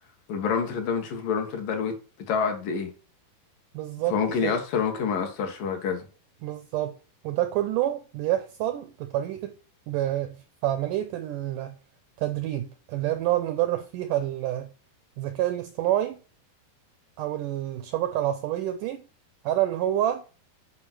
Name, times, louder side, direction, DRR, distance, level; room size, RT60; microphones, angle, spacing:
voice 1, 0.3-2.0 2.3-2.9 4.1-6.1, left 6 dB, 65° left, 3.1 m, -27 dB
voice 2, 3.7-4.5 6.4-7.0 7.2-9.6 9.9-11.8 12.2-14.7 15.2-16.2 17.2-19.1 19.4-20.3, right 13 dB, 80° right, 1.9 m, -28 dB
8.8 x 5.3 x 6.1 m
omnidirectional pair, 4.4 m